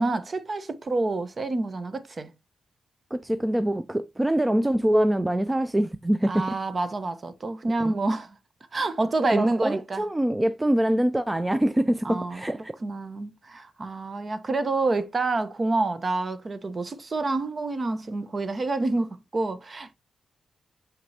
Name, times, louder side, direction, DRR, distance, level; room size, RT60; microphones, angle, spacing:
voice 1, 0.0-2.3 6.3-8.4 8.7-10.0 12.0-19.9, right 2 dB, 45° right, 1.0 m, -28 dB
voice 2, 3.1-6.4 7.8-7.9 9.2-12.8, right 1 dB, 15° right, 0.5 m, -24 dB
6.1 x 5.7 x 2.8 m
supercardioid pair, 45°, 0 cm